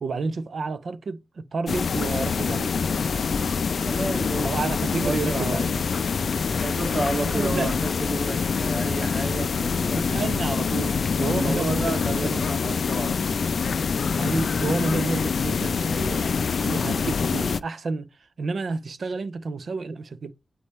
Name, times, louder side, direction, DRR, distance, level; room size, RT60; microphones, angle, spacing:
voice 1, 0.0-2.7 4.4-5.7 7.2-7.7 9.9-12.5 14.1-18.1 18.4-20.3, right 4 dB, 65° right, 0.5 m, -30 dB
sound 1, 1.7-17.6, left 5 dB, 70° left, 0.3 m, -25 dB
voice 2, 3.8-4.5 5.0-6.1 6.6-10.1 11.3-13.4, right 2 dB, 45° right, 1.8 m, -32 dB
8.4 x 4.2 x 3.3 m
wide cardioid pair, 125°, 0 cm